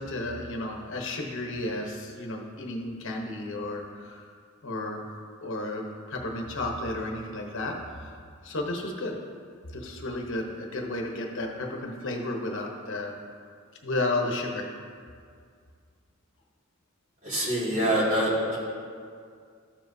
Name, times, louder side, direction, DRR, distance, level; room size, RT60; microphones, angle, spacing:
voice 1, 0.0-4.3 4.6-5.1 5.4-8.1 8.4-9.2 9.7-13.1 13.8-14.7, left 2 dB, 60° left, 0 dB, 1.0 m, -32 dB
voice 2, 17.2-18.6, equal, 35° right, -7 dB, 2.4 m, -25 dB
13.0 x 7.4 x 2.7 m, 2.2 s
head